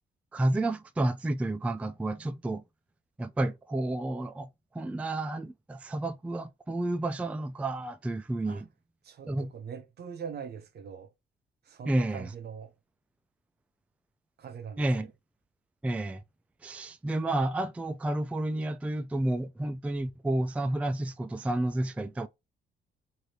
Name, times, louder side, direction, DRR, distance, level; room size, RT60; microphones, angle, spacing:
voice 1, 0.3-2.6 3.2-4.5 4.7-8.7 9.3-9.5 11.9-12.3 14.8-15.1 15.8-16.2 16.6-22.3, right 1 dB, 5° right, 0.3 m, -30 dB
voice 2, 9.0-11.1 11.7-12.7 14.4-14.9, right 7 dB, 55° right, 0.7 m, -42 dB
3.3 x 2.6 x 2.7 m
cardioid pair, 90°, 20 cm